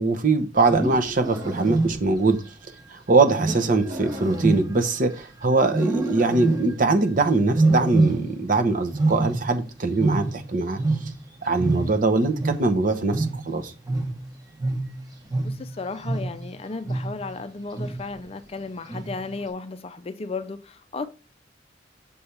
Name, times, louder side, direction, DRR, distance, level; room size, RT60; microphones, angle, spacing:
voice 1, 0.0-2.4 2.9-10.8 11.4-13.7, right 3 dB, 45° right, 0.8 m, -22 dB
Wild animals, 0.6-2.3 3.4-5.2 5.7-6.9 7.5-8.5 8.8-11.3 11.6-16.5 16.9-17.3 17.7-18.2 18.9-19.3, right 2 dB, 20° right, 1.0 m, -26 dB
voice 2, 15.4-21.0, left 3 dB, 30° left, 0.4 m, -34 dB
6.9 x 3.3 x 5.6 m
head